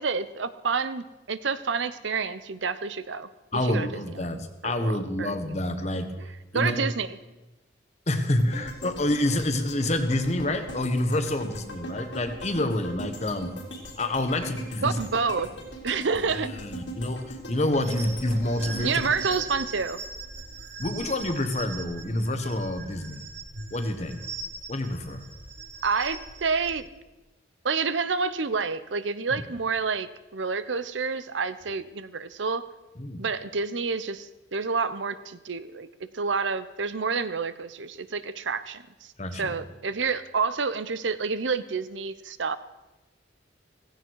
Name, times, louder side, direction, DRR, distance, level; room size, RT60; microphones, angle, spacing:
voice 1, 0.0-5.3 6.2-7.2 14.8-15.5 15.8-16.5 18.8-20.0 25.8-26.9 27.6-32.6 33.2-42.6, right 5 dB, 85° right, 13 dB, 0.8 m, -29 dB
voice 2, 3.5-6.1 6.5-6.9 8.1-13.5 14.0-15.0 16.6-19.0 20.8-23.3 23.7-24.2 24.7-25.2 33.0-33.2 39.2-39.5, left 1 dB, 35° left, 8 dB, 1.3 m, -28 dB
sound 1, 8.4-20.6 21.0-21.1, right 1 dB, 85° left, 3.5 m, -40 dB
sound 2, 17.8-26.7, right 4 dB, 65° right, 3.5 m, -40 dB
16.0 x 16.0 x 4.7 m, 1.0 s
head